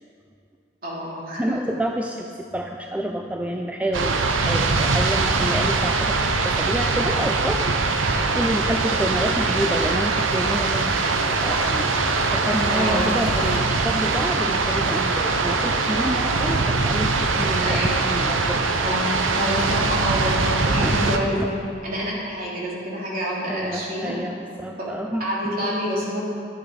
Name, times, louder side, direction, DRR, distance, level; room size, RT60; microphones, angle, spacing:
voice 1, 0.8-1.6 12.7-13.0 17.6-17.9 18.8-21.6 21.8-24.1 24.8-24.9 25.2-26.3, equal, 45° right, -6 dB, 3.2 m, -27 dB
voice 2, 1.4-2.3 2.5-6.2 6.4-11.1 11.4-18.6 20.2-20.4 20.8-21.0 21.2-21.5 23.5-25.5, right 1 dB, 5° right, 2 dB, 0.4 m, -28 dB
sound 1, 3.9-21.2, right 3 dB, 80° right, 0.8 m, -22 dB
sound 2, 9.4-13.7, left 5 dB, 90° left, 0.6 m, -38 dB
11.5 x 9.9 x 5.1 m, 2.4 s
head